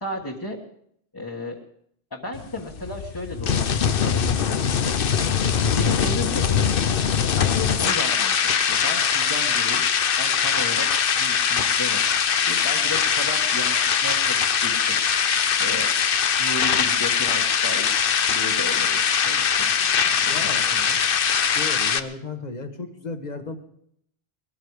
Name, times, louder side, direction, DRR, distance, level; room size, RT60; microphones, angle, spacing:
voice 1, 0.0-0.6 1.1-1.6 2.1-5.2 5.7-6.7 7.4-9.9 10.2-10.9 11.1-12.0 12.5-13.8 14.0-15.0 15.6-15.9 16.4-17.9 18.3-19.0 19.2-21.0, left 1 dB, 20° left, -2 dB, 1.6 m, -34 dB
sound 1, 2.3-22.0, left 7 dB, 65° left, 0.9 m, -22 dB
voice 2, 20.3-21.0 21.6-23.6, left 3 dB, 45° left, 6 dB, 1.7 m, -35 dB
21.0 x 14.0 x 4.9 m, 0.70 s
omnidirectional pair, 1.0 m